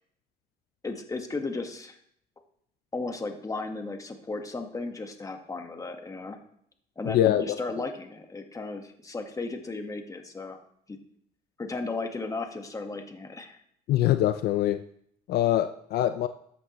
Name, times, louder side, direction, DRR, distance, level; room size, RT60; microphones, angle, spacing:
voice 1, 0.8-2.0 2.9-6.4 7.0-10.6 10.9-11.0 11.6-13.6, left 3 dB, 20° left, 5 dB, 1.4 m, -35 dB
voice 2, 7.1-7.4 13.9-14.8 15.3-16.3, left 13 dB, 70° left, 10 dB, 0.5 m, -23 dB
13.0 x 8.5 x 3.0 m, 0.68 s
cardioid pair, 110°, 17 cm